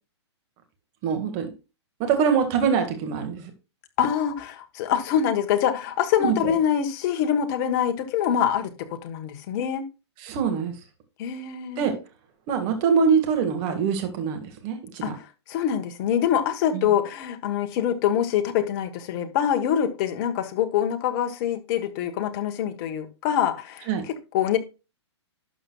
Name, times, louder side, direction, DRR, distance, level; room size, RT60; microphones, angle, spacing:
voice 1, 1.0-1.5 2.0-3.5 6.2-6.5 10.2-10.7 11.8-11.9 12.5-15.2 16.7-16.9 23.9-24.0, right 6 dB, 35° right, 1.9 m, -24 dB
voice 2, 4.0-9.9 11.2-11.9 15.0-15.2 15.5-24.6, left 9 dB, 40° left, 1.3 m, -25 dB
11.5 x 6.9 x 2.4 m
hypercardioid pair, 145°, 15 cm